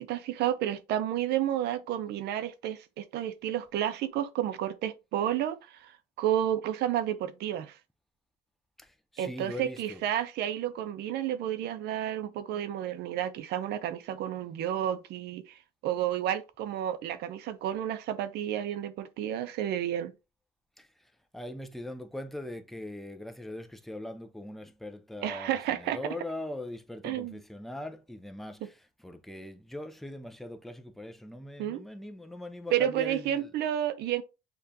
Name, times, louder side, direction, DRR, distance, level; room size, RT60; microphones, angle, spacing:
voice 1, 0.0-7.8 9.2-20.1 25.2-26.0 27.0-27.4 31.6-31.8 32.7-34.2, right 11 dB, 75° right, 0.6 m, -31 dB
voice 2, 8.8-10.0 20.8-20.9 21.3-33.5, left 1 dB, ahead, 0.5 m, -41 dB
6.7 x 2.4 x 2.7 m
cardioid pair, 110°, 17 cm